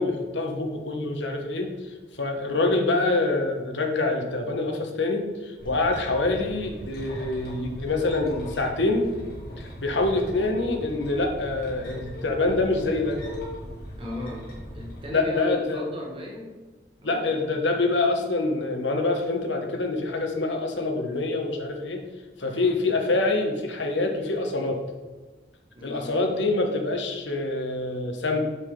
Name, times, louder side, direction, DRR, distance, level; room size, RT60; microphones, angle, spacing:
voice 1, 0.0-1.7 2.1-9.1 9.6-13.2 15.1-15.8 17.0-22.0 22.4-24.8 25.8-28.4, left 2 dB, 85° left, 3 dB, 1.4 m, -26 dB
sound 1, 5.6-15.1, equal, 55° left, 2.8 m, -39 dB
voice 2, 14.0-16.5 17.0-17.5 22.4-22.7 25.8-26.2, left 1 dB, 30° right, -1 dB, 1.6 m, -37 dB
8.1 x 7.4 x 3.9 m, 1.3 s
head